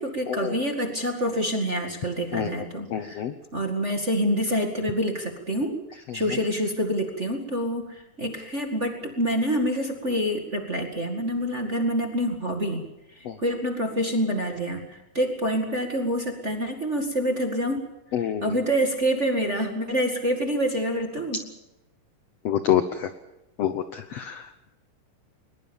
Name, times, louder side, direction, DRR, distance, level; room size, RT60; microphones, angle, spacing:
voice 1, 0.0-3.2 3.5-12.8 13.1-17.8 18.2-21.4, equal, 25° right, 3 dB, 1.7 m, -27 dB
voice 2, 2.3-2.6 2.9-3.3 6.1-6.2 13.2-13.4 18.1-18.6 22.4-23.1 23.6-24.7, left 10 dB, 70° left, 10 dB, 1.5 m, -27 dB
21.5 x 21.5 x 7.1 m, 0.93 s
omnidirectional pair, 4.1 m